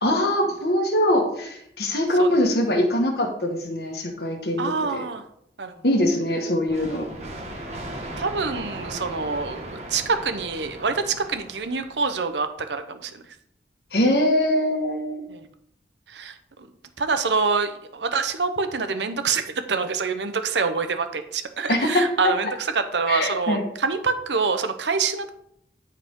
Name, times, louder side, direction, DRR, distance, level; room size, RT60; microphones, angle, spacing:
voice 1, 0.0-5.0 5.8-7.1 13.9-15.2 21.7-22.5 23.1-23.6, left 1 dB, 65° left, 2 dB, 1.7 m, -23 dB
voice 2, 4.6-5.2 5.6-5.7 8.2-13.2 15.3-15.4 16.1-16.4 17.0-22.5 22.7-25.3, right 4 dB, 90° right, 9 dB, 0.9 m, -26 dB
sound 1, 6.7-12.3, right 1 dB, 40° right, 1.5 m, -37 dB
13.5 x 4.9 x 3.8 m, 0.73 s
head